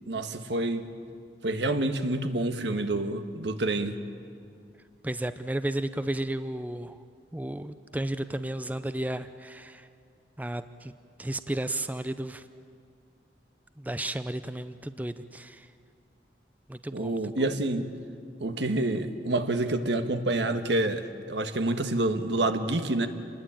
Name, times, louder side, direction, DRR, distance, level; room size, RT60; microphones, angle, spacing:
voice 1, 0.1-0.9 1.4-4.0 16.9-17.9 18.4-23.1, right 2 dB, 80° right, 8 dB, 1.5 m, -28 dB
voice 2, 5.0-7.0 7.3-9.9 10.4-10.9 11.2-12.5 13.8-15.7 16.7-17.5, right 1 dB, 10° right, 11 dB, 0.5 m, -33 dB
27.5 x 20.5 x 8.8 m, 2.3 s
head